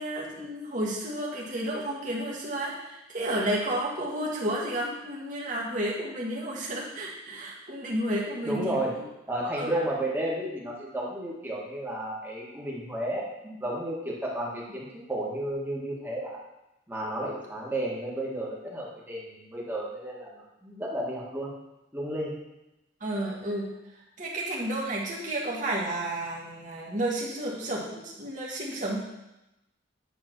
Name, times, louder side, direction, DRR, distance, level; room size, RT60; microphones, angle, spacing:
voice 1, 0.0-9.0 9.6-9.7 23.0-23.7 24.2-29.0, right 1 dB, 40° right, -4 dB, 1.8 m, -31 dB
voice 2, 8.4-8.9 9.3-16.3 16.9-21.5 21.9-22.4, right 1 dB, 10° right, -5 dB, 1.8 m, -32 dB
9.1 x 3.9 x 6.1 m, 0.94 s
head